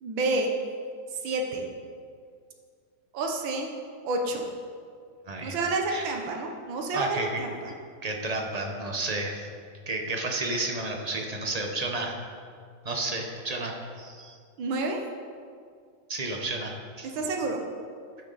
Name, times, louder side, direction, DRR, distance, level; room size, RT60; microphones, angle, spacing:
voice 1, 0.0-0.5 1.2-1.7 3.1-3.7 4.0-4.4 5.4-7.7 14.6-15.0 17.1-17.6, right 2 dB, 80° right, 2 dB, 1.8 m, -29 dB
voice 2, 5.3-5.6 5.9-6.1 6.9-7.4 8.0-9.5 9.9-12.2 12.8-14.4 16.1-17.1, right 2 dB, 40° right, 2 dB, 0.5 m, -31 dB
12.5 x 7.5 x 4.0 m, 2.1 s
omnidirectional pair, 2.1 m